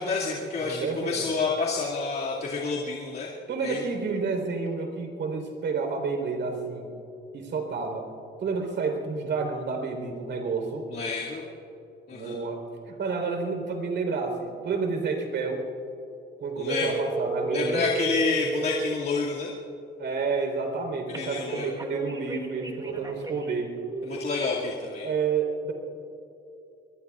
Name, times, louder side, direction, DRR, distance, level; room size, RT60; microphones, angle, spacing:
voice 1, 0.0-3.3 3.6-3.8 10.9-11.4 12.1-12.4 16.6-16.9 17.5-19.5 21.1-21.7 24.0-25.1, left 4 dB, 50° left, -5 dB, 2.4 m, -29 dB
voice 2, 0.6-1.2 3.5-6.9 7.3-8.1 8.4-10.8 12.1-15.7 16.4-17.8 20.0-23.7 25.0-25.7, right 4 dB, 65° right, 3 dB, 4.1 m, -30 dB
sound 1, 16.7-18.9 21.1-23.5 23.9-24.2, right 3 dB, 20° right, 2.2 m, -32 dB
24.0 x 22.0 x 2.5 m, 2.8 s
cardioid pair, 90°, 20 cm